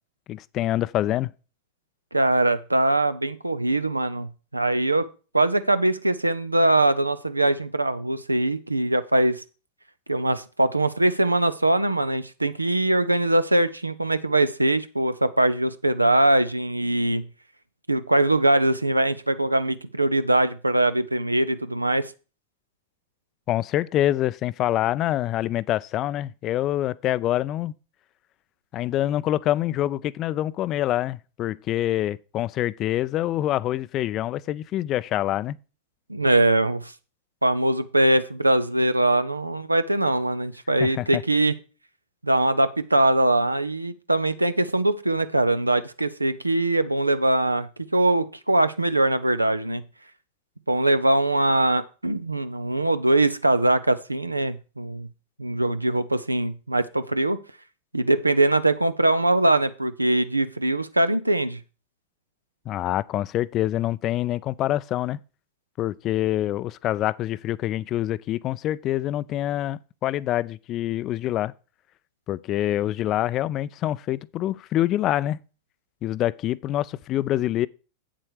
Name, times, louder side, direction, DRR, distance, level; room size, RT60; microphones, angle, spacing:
voice 1, 0.3-1.3 23.5-27.7 28.7-35.6 40.8-41.2 62.7-65.2 65.8-71.5 72.3-75.4 76.0-77.7, left 13 dB, 35° left, 0.4 m, -26 dB
voice 2, 2.1-5.1 5.3-9.4 10.1-17.3 17.9-22.1 36.1-36.9 37.4-41.5 42.2-49.8 50.7-55.1 55.4-57.4 57.9-61.6, right 1 dB, 85° right, 0.6 m, -22 dB
8.5 x 7.6 x 4.8 m
figure-of-eight pair, 90°, 0 cm